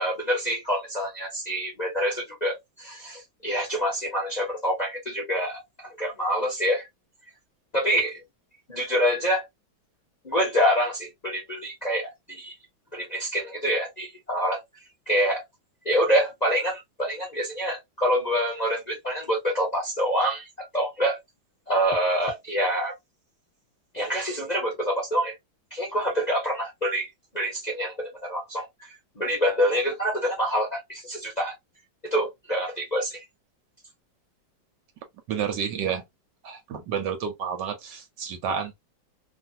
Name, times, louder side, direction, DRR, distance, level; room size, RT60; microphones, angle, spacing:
voice 1, 0.0-6.9 7.7-8.2 8.7-9.4 10.2-12.5 12.9-14.6 15.1-15.4 15.8-20.5 20.7-21.2 21.7-22.9 23.9-25.3 25.7-27.1 27.3-28.7 29.2-31.5 32.1-33.2, equal, 35° left, 0.7 m, -26 dB
voice 2, 35.3-36.0 36.4-38.7, right 7 dB, 70° right, 1.2 m, -30 dB
3.1 x 2.3 x 2.7 m
omnidirectional pair, 2.2 m